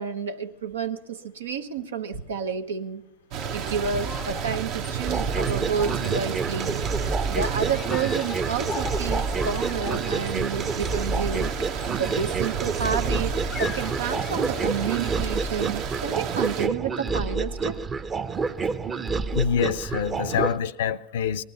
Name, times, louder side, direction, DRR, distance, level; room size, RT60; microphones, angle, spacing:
voice 1, 0.0-3.0 3.5-6.8 7.3-11.5 12.0-17.8, right 6 dB, 85° right, 1.0 m, -30 dB
sound 1, 3.3-16.7, right 9 dB, 55° right, 0.9 m, -32 dB
sound 2, 3.4-15.4, left 7 dB, 30° left, 0.5 m, -39 dB
sound 3, 5.0-20.6, right 4 dB, 25° right, 0.7 m, -29 dB
voice 2, 19.3-21.4, left 8 dB, 75° left, 0.6 m, -26 dB
19.0 x 13.0 x 5.6 m
hypercardioid pair, 95°, 0 cm